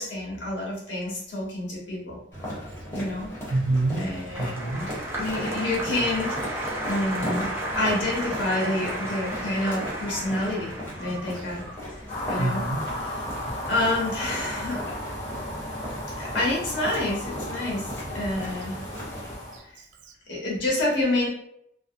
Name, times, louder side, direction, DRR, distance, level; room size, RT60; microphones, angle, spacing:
voice 1, 0.0-2.2 2.5-3.3 4.0-7.5 7.7-11.6 12.3-12.6 13.0-13.2 13.6-14.8 15.9-18.8 20.3-21.3, left 2 dB, 70° left, -4 dB, 1.0 m, -28 dB
sound 1, 2.3-19.3, equal, 15° left, 0.9 m, -37 dB
Applause, 3.4-13.8 14.0-14.6, right 1 dB, 10° right, 0.4 m, -34 dB
voice 2, 3.5-4.1 4.4-4.8 12.4-12.8 19.5-20.1, right 2 dB, 75° right, 4 dB, 0.4 m, -27 dB
sound 2, 12.1-19.6, left 1 dB, 45° left, 0.7 m, -35 dB
2.5 x 2.0 x 2.5 m, 0.75 s
head